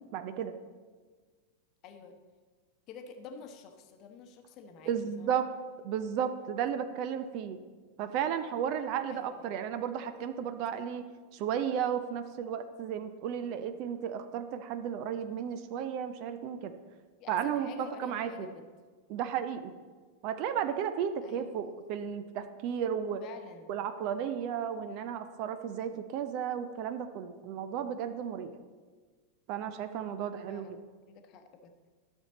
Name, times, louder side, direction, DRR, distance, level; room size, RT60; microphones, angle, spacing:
voice 1, 0.1-0.6 4.9-5.5 5.8-7.6 8.0-11.0 11.3-16.7 17.3-18.5 19.1-19.7 20.2-23.2 23.7-28.5 29.5-30.7, right 8 dB, 45° right, 10 dB, 0.6 m, -34 dB
voice 2, 1.8-2.2 2.9-5.3 9.1-9.8 17.2-18.7 21.2-21.7 23.2-23.7 30.5-31.7, left 5 dB, 40° left, 6 dB, 1.0 m, -49 dB
12.0 x 6.4 x 4.0 m, 1.5 s
figure-of-eight pair, 90°, 0 cm